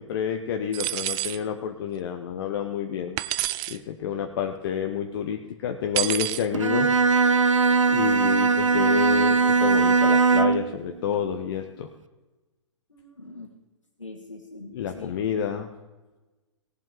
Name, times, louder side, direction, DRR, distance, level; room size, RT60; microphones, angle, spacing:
voice 1, 0.0-3.2 3.7-6.9 7.9-11.9 14.7-15.7, left 8 dB, 45° left, 5 dB, 1.0 m, -29 dB
Dropping Spoon Linoleum, 0.7-1.4 3.2-3.8 6.0-6.5, right 17 dB, 25° right, 0.4 m, -28 dB
Bowed string instrument, 6.5-10.7, right 4 dB, 85° right, 0.6 m, -20 dB
voice 2, 12.9-13.5 14.0-15.4, left 2 dB, 85° left, -3 dB, 2.0 m, -43 dB
18.0 x 7.3 x 4.8 m, 1.2 s
figure-of-eight pair, 115°, 16 cm